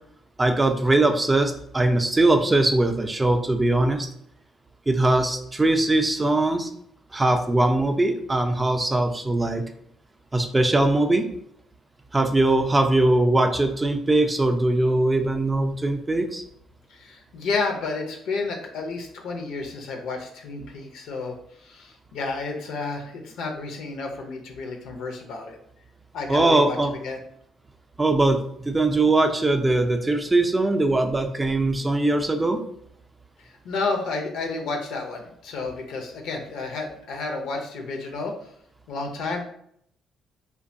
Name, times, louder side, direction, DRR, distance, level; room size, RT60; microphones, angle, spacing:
voice 1, 0.4-4.1 4.9-6.7 7.1-9.7 10.3-11.3 12.1-16.4 26.3-26.9 28.0-32.6, right 2 dB, 25° right, 6 dB, 0.4 m, -21 dB
voice 2, 16.9-21.4 21.6-25.6 26.1-27.2 33.4-38.3 38.9-39.4, left 3 dB, 75° left, 2 dB, 0.5 m, -31 dB
2.7 x 2.2 x 2.5 m, 0.70 s
hypercardioid pair, 55°, 0 cm